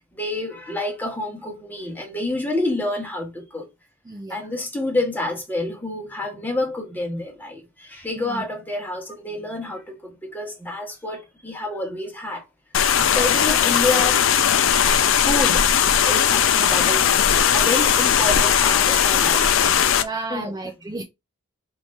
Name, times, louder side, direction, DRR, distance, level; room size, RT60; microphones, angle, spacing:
voice 1, 0.2-3.7 4.3-12.4 13.1-14.2 14.8-15.7 16.1-19.8 20.3-20.5, left 2 dB, 10° left, 1.2 m, -28 dB
voice 2, 4.1-4.4 8.2-8.4 20.0-21.0, right 2 dB, 20° right, 0.4 m, -32 dB
sound 1, 12.7-20.0, left 8 dB, 65° left, 0.5 m, -18 dB
4.8 x 2.7 x 3.3 m
head